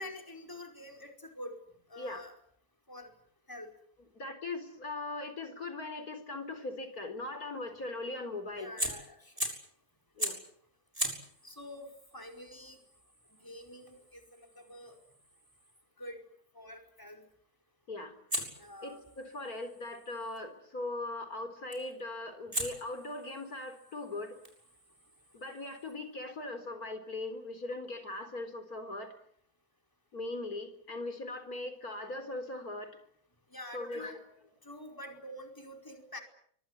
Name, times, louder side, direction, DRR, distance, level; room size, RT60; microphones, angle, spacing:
voice 1, 0.0-1.5 1.9-2.3 2.9-3.1 3.5-3.7 8.5-9.3 11.4-12.8 13.4-15.0 16.0-16.2 16.5-17.3 18.6-19.0 33.5-34.2 34.6-36.2, left 1 dB, 15° left, 3 dB, 4.9 m, -46 dB
voice 2, 4.1-8.7 10.2-10.4 17.9-18.1 18.8-24.4 25.3-29.1 30.1-33.0 33.7-34.2, left 2 dB, 75° left, 9 dB, 4.6 m, -40 dB
Fire, 8.8-9.7 10.2-10.5 10.9-15.9 18.3-20.4 21.7-22.0 22.5-25.9, right 1 dB, 20° right, 7.1 m, -41 dB
25.0 x 24.5 x 8.4 m, 0.64 s
omnidirectional pair, 1.6 m